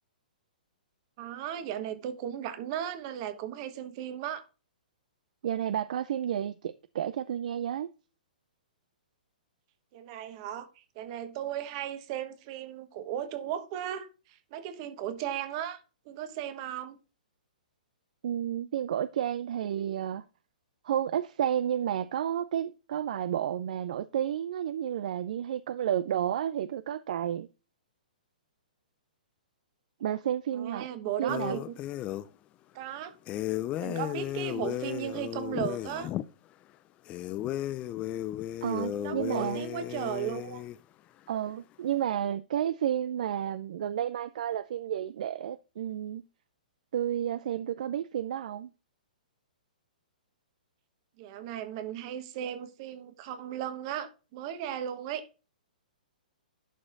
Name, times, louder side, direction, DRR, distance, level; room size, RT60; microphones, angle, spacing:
voice 1, 1.2-4.4 9.9-17.0 30.5-31.7 32.7-33.2 33.8-36.1 38.9-40.7 51.2-55.3, right 10 dB, 40° right, 1.3 m, -36 dB
voice 2, 5.4-7.9 18.2-20.2 20.8-27.5 30.0-30.9 31.2-31.6 38.6-39.7 41.3-46.2 46.9-48.7, right 10 dB, 60° right, 0.4 m, -31 dB
sound 1, 31.3-32.3 33.3-36.2 37.1-40.8, left 13 dB, 25° left, 0.5 m, -34 dB
11.0 x 4.9 x 2.5 m
hypercardioid pair, 125°, 5 cm